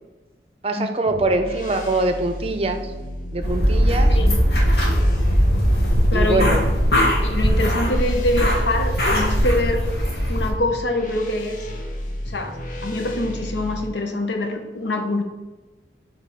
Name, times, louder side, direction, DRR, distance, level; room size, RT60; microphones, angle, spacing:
voice 1, 0.6-2.9 3.3-4.1 6.1-6.6, right 2 dB, 35° right, 7 dB, 0.5 m, -23 dB
sound 1, 1.1-13.9, left 1 dB, 50° left, 0.8 m, -32 dB
sound 2, 3.4-10.5, equal, 65° left, 1.7 m, -19 dB
voice 2, 6.1-6.6 6.9-9.9 10.3-11.7 12.3-12.5 12.8-15.2, left 2 dB, 85° left, 5 dB, 0.9 m, -25 dB
5.2 x 3.5 x 5.7 m, 1.2 s
head